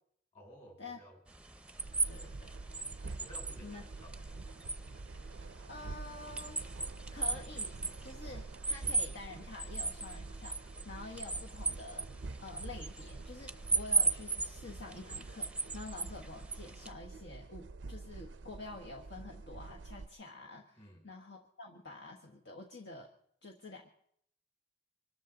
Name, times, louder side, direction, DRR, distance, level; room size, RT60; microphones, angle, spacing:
voice 1, 0.3-1.2 3.2-4.7 20.8-21.1, equal, 35° left, 0 dB, 5.7 m, -56 dB
sound 1, 1.3-16.9, right 4 dB, 5° right, 0.7 m, -38 dB
sound 2, 1.8-20.1, right 3 dB, 90° right, 0.5 m, -47 dB
voice 2, 2.1-2.5 3.6-3.8 5.7-6.6 7.1-7.8 8.0-12.1 12.4-15.5 15.7-23.1 23.4-23.9, left 3 dB, 70° left, 0 dB, 1.4 m, -48 dB
24.5 x 13.0 x 3.9 m, 0.68 s
head